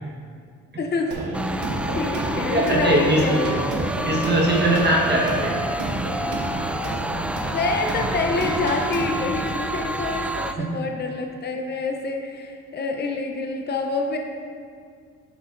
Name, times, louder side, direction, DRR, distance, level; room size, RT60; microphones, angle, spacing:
voice 1, 0.8-1.1 1.5-3.5 7.5-14.2, left 3 dB, 35° left, 3 dB, 0.8 m, -27 dB
sound 1, 1.1-9.5, right 2 dB, 80° right, 1.1 m, -31 dB
sound 2, 1.3-10.5, equal, 5° right, 0.3 m, -28 dB
voice 2, 2.5-3.2 4.0-5.6 10.6-10.7, right 1 dB, 35° right, -3 dB, 1.4 m, -21 dB
9.1 x 7.2 x 2.6 m, 2.2 s
cardioid pair, 90°, 30 cm